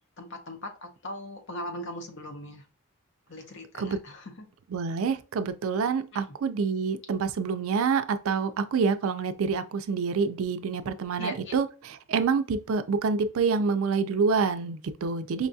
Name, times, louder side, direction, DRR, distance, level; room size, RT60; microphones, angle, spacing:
voice 1, 0.2-2.6 3.3-4.5 6.1-6.3 11.2-11.5, left 1 dB, 55° left, 0.7 m, -39 dB
voice 2, 4.7-15.5, right 5 dB, 70° right, 0.4 m, -27 dB
4.9 x 2.3 x 2.6 m
head